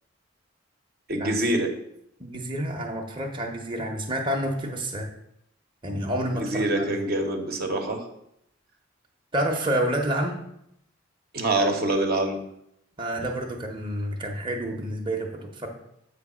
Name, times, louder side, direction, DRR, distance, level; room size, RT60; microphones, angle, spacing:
voice 1, 1.1-1.7 6.4-8.0 11.3-12.4, right 1 dB, 55° right, 3 dB, 1.0 m, -25 dB
voice 2, 2.2-5.1 5.8-6.8 9.3-10.4 13.0-15.7, right 1 dB, 25° right, 0 dB, 0.9 m, -29 dB
8.0 x 3.3 x 6.1 m, 0.77 s
head